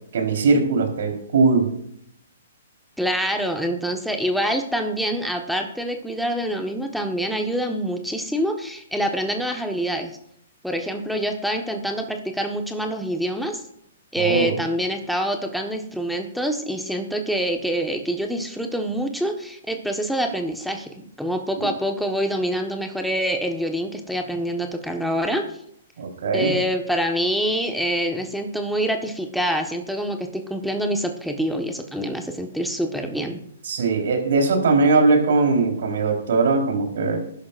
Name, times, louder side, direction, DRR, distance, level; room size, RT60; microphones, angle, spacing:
voice 1, 0.1-1.7 14.2-14.6 21.6-21.7 26.0-26.6 33.6-37.2, right 3 dB, 65° right, 2 dB, 4.0 m, -20 dB
voice 2, 3.0-10.1 10.6-13.6 14.1-25.5 26.3-33.4, equal, ahead, 3 dB, 1.4 m, -26 dB
21.5 x 11.5 x 2.6 m, 0.70 s
figure-of-eight pair, 125°, 0 cm